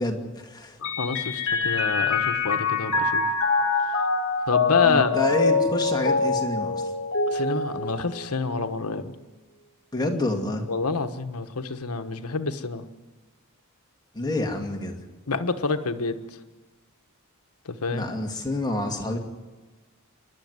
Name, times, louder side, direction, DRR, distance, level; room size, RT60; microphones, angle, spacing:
voice 1, 0.0-0.8 4.8-6.9 9.9-10.6 14.1-15.0 17.9-19.2, left 2 dB, 20° left, 1 dB, 2.4 m, -28 dB
voice 2, 0.8-3.3 4.5-5.1 7.3-9.1 10.7-12.8 15.3-16.1 17.6-18.0, left 4 dB, 80° left, 8 dB, 1.3 m, -27 dB
Mallet percussion, 0.8-8.6, left 4 dB, 60° left, 2.0 m, -24 dB
28.0 x 12.0 x 9.6 m, 1.2 s
head